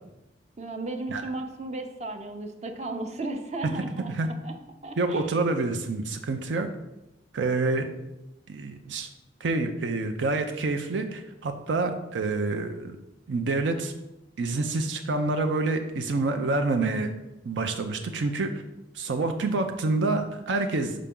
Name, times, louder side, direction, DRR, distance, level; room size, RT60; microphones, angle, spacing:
voice 1, 0.6-4.5 4.8-5.3, right 2 dB, 35° right, 6 dB, 0.6 m, -35 dB
voice 2, 5.0-6.7 7.3-7.9 8.5-9.1 9.4-13.0 13.3-13.9 14.4-17.1 17.5-18.6 18.9-20.9, right 3 dB, 80° right, 6 dB, 0.5 m, -27 dB
5.6 x 5.0 x 3.7 m, 0.95 s
head